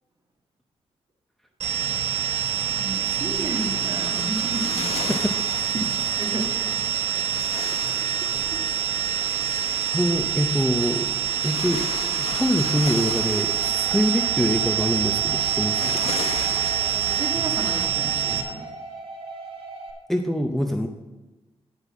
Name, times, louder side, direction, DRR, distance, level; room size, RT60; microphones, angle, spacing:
sound 1, 1.6-18.4, right 11 dB, 85° right, 1.4 m, -26 dB
voice 1, 3.0-5.1 6.2-6.7 8.2-8.4 16.6-18.7, right 1 dB, 40° right, 2 dB, 1.7 m, -34 dB
sound 2, 3.3-17.9, left 6 dB, 90° left, 0.9 m, -37 dB
voice 2, 9.9-11.1 11.4-11.8 12.3-16.0 20.1-20.9, equal, 5° left, 5 dB, 0.6 m, -24 dB
sound 3, 12.6-19.9, right 3 dB, 65° right, 2.2 m, -39 dB
10.0 x 5.5 x 7.2 m, 1.1 s
cardioid pair, 105°, 11 cm